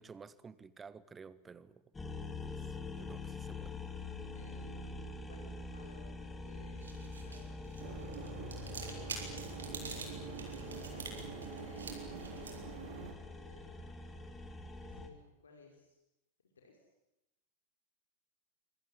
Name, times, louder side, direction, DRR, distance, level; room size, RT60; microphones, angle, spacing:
voice 1, 0.0-1.8 2.4-3.8, right 5 dB, 15° right, 17 dB, 1.5 m, -53 dB
sound 1, 1.9-15.1, left 3 dB, 10° left, 3.3 m, -45 dB
voice 2, 4.3-7.8 8.6-10.3 10.7-13.8 14.8-16.0 16.6-16.9, left 4 dB, 70° left, 2 dB, 5.4 m, -59 dB
sound 2, 6.5-15.0, right 4 dB, 70° right, 6.4 m, -49 dB
sound 3, 7.8-13.1, right 7 dB, 55° right, 4.5 m, -47 dB
26.0 x 25.5 x 8.1 m, 0.89 s
figure-of-eight pair, 90°, 0 cm